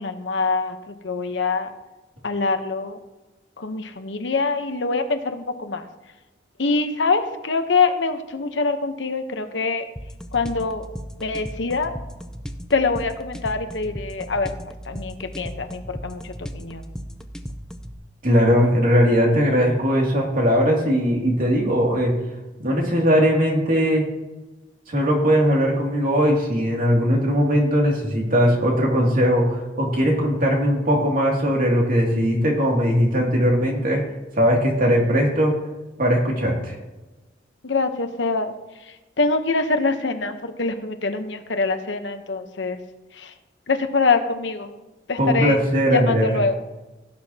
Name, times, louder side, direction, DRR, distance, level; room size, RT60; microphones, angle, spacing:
voice 1, 0.0-1.7 2.2-3.0 3.6-5.9 6.6-9.9 10.3-10.9 11.2-11.9 12.7-14.5 14.9-16.9 37.6-38.5 38.8-42.8 43.1-43.3 43.7-44.8 45.1-45.6 45.9-46.6, left 4 dB, 75° left, 7 dB, 0.9 m, -24 dB
sound 1, 10.0-18.0, equal, 5° left, 0.6 m, -36 dB
voice 2, 18.2-22.1 22.6-24.0 24.9-34.0 34.4-35.5 36.0-36.7 45.2-46.3, equal, 50° right, -1 dB, 2.5 m, -19 dB
16.5 x 7.9 x 2.9 m, 1.1 s
head